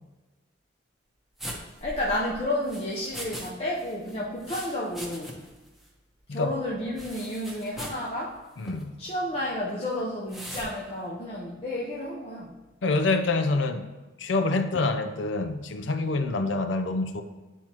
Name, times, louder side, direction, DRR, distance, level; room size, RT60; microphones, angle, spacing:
sound 1, 1.4-3.5 3.8-5.6 5.8-5.9 7.0-8.0 8.6-8.8 10.3-10.7, right 1 dB, ahead, 0.9 m, -40 dB
voice 1, 1.8-5.4 6.3-8.4 9.0-12.6 16.0-16.2, left 1 dB, 35° left, -4 dB, 0.7 m, -31 dB
voice 2, 8.6-9.0 12.8-13.8 14.2-17.2, left 3 dB, 75° left, 8 dB, 0.6 m, -26 dB
9.9 x 4.4 x 2.9 m, 1.2 s
head